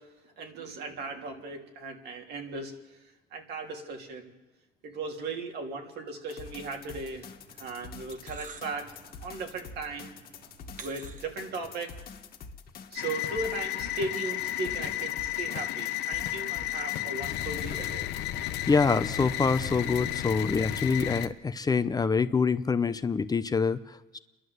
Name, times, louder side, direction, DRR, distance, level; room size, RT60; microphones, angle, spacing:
voice 1, 0.0-3.0 3.3-4.3 4.8-7.3 7.6-8.9 9.2-10.1 10.8-12.0 12.9-18.1, right 3 dB, 75° right, 2 dB, 3.3 m, -37 dB
sound 1, 6.3-17.9, left 5 dB, 60° left, 1.7 m, -46 dB
sound 2, 6.5-11.8, right 5 dB, 50° right, 1.7 m, -52 dB
sound 3, 13.0-21.3, left 13 dB, 85° left, 1.1 m, -33 dB
voice 2, 18.7-24.2, left 5 dB, 20° left, 12 dB, 0.7 m, -26 dB
28.5 x 11.5 x 8.0 m, 1.1 s
cardioid pair, 110°, 17 cm